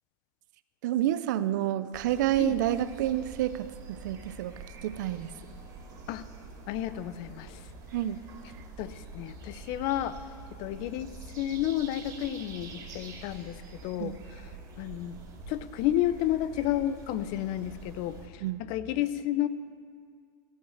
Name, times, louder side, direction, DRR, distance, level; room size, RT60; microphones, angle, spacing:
voice 1, 0.8-5.3 7.9-8.2 14.0-14.2 18.4-18.6, right 12 dB, 70° right, 14 dB, 0.5 m, -29 dB
sound 1, 1.9-18.3, right 4 dB, 40° right, 2.4 m, -46 dB
voice 2, 6.7-7.6 8.8-10.2 10.6-11.1 11.4-14.2 14.8-15.1 15.5-19.5, left 12 dB, 50° left, 14 dB, 0.5 m, -31 dB
15.0 x 5.6 x 7.9 m, 2.1 s
supercardioid pair, 145°, 10 cm